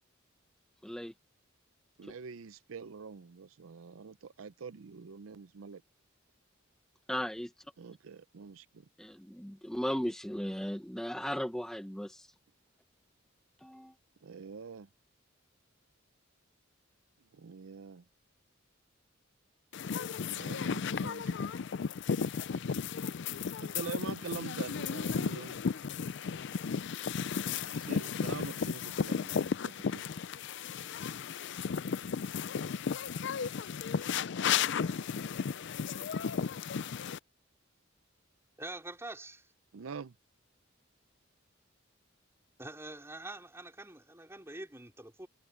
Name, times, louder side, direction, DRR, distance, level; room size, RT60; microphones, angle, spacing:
voice 1, 0.8-1.1 7.1-7.5 9.0-12.3 13.6-13.9, equal, 5° left, 0.7 m, -36 dB
voice 2, 2.0-5.8 7.8-8.9 14.2-14.9 17.3-18.0 20.1-21.6 23.6-25.6 27.6-30.0 39.7-40.1, right 5 dB, 90° right, 0.6 m, -45 dB
sound 1, 19.7-37.2, left 6 dB, 60° left, 0.4 m, -34 dB
voice 3, 38.6-39.5 42.6-45.3, right 2 dB, 15° right, 4.1 m, -45 dB
head